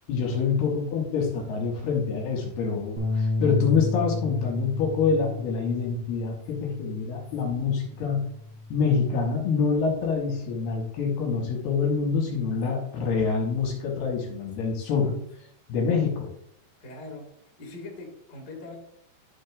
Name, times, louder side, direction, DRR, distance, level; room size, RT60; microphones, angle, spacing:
voice 1, 0.1-8.3 8.7-15.2 15.7-16.3, left 5 dB, 70° left, 0 dB, 3.0 m, -26 dB
sound 1, 3.0-9.2, left 2 dB, 30° right, 3.0 m, -32 dB
voice 2, 16.8-17.3 17.6-18.8, left 2 dB, 40° left, -1 dB, 1.5 m, -41 dB
12.0 x 6.3 x 2.4 m, 0.74 s
omnidirectional pair, 5.0 m